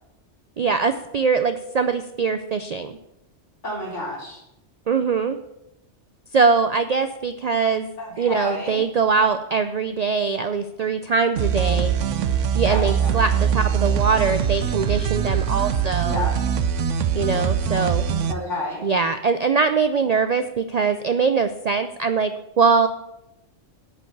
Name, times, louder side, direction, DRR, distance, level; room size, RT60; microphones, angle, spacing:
voice 1, 0.6-2.9 4.9-5.4 6.3-7.9 8.2-11.9 12.5-16.2 17.1-18.0 18.8-22.9, right 5 dB, 60° right, 9 dB, 0.4 m, -22 dB
voice 2, 3.6-4.4 8.0-8.8 12.7-13.2 16.0-16.3 18.3-18.8, left 1 dB, 80° left, -5 dB, 4.1 m, -30 dB
sound 1, 11.4-18.3, right 8 dB, 90° right, 1.0 m, -22 dB
8.5 x 5.4 x 7.9 m, 0.88 s
omnidirectional pair, 1.2 m